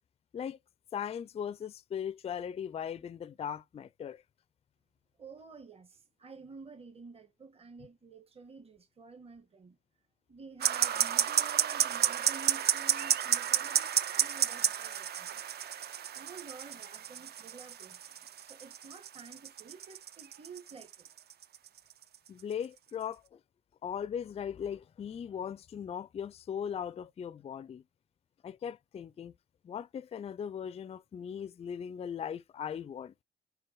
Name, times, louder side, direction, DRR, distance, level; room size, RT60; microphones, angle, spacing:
voice 1, 0.9-4.2 22.3-23.4 23.8-27.8 28.4-29.3 29.6-33.1, left 8 dB, 30° left, 0.4 m, -38 dB
voice 2, 5.2-9.8 10.3-15.4 16.1-18.0 18.4-21.1, right 4 dB, 30° right, 1.3 m, -51 dB
sound 1, 10.6-22.7, right 9 dB, 55° right, 0.6 m, -31 dB
5.0 x 4.5 x 6.1 m
cardioid pair, 90°, 20 cm